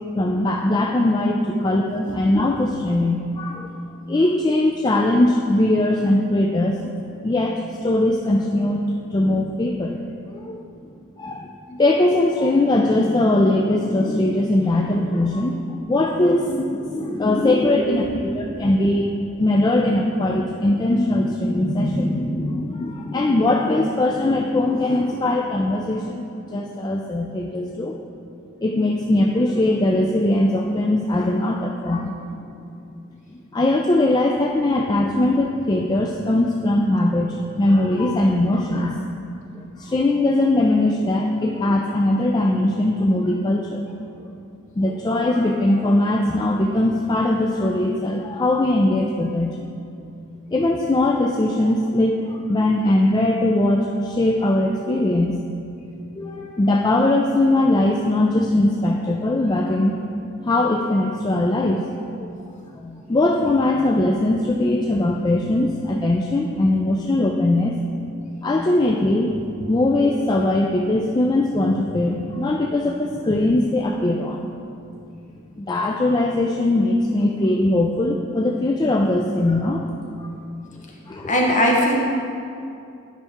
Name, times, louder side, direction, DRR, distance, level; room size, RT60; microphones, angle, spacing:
voice 1, 0.1-3.7 4.1-7.0 7.2-8.8 9.1-10.0 10.3-10.6 11.2-18.0 18.4-19.1 19.4-28.0 28.6-32.2 33.5-39.0 39.5-43.9 44.8-49.6 50.5-55.4 56.2-60.0 60.4-61.8 62.1-62.3 62.8-67.8 68.4-74.5 75.6-79.8 80.2-80.4 81.1-81.3, left 1 dB, 20° left, 1 dB, 0.3 m, -20 dB
voice 2, 81.3-81.9, equal, 40° left, -2 dB, 1.1 m, -19 dB
9.7 x 5.5 x 3.6 m, 2.5 s
head